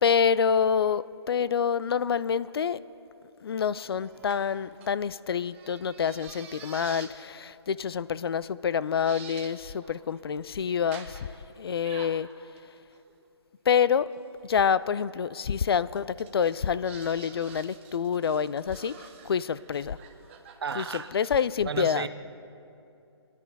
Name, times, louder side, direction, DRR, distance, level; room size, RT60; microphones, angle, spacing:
voice 1, 0.0-2.8 3.4-11.3 11.6-12.3 13.7-14.1 14.4-18.9 19.2-20.0 20.8-20.9 21.1-22.1, left 7 dB, 60° left, 17 dB, 0.4 m, -27 dB
sound 1, 4.0-7.2 7.8-8.0 8.5-8.6 9.0-9.6 9.8-10.3 10.9-11.4 11.8-13.3 14.4-14.7 16.0-21.5, right 7 dB, 25° right, 1.0 m, -48 dB
voice 2, 20.6-21.1 21.7-22.1, right 6 dB, 60° right, 11 dB, 0.7 m, -33 dB
23.0 x 11.0 x 3.5 m, 2.7 s
hypercardioid pair, 155°, 15 cm